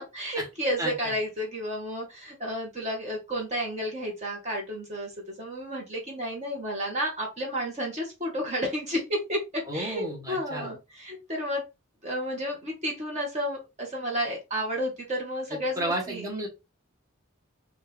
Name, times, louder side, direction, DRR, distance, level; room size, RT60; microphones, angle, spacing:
voice 1, 0.0-11.6 12.0-16.2, equal, 35° right, -1 dB, 1.2 m, -31 dB
voice 2, 9.7-10.7 15.5-16.5, right 1 dB, 15° right, -1 dB, 1.3 m, -32 dB
4.2 x 2.5 x 3.4 m, 0.25 s
head